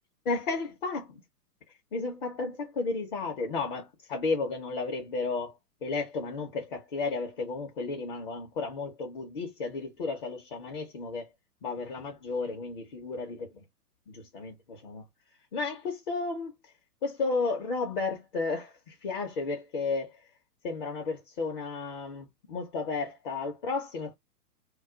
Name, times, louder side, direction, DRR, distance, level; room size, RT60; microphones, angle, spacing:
voice 1, 0.3-1.2 1.9-5.5 5.8-11.3 11.6-13.6 14.1-15.0 15.5-16.6 17.0-20.2 20.6-24.1, left 3 dB, 35° left, 0.6 m, -33 dB
2.3 x 2.1 x 3.7 m
figure-of-eight pair, 120°, 47 cm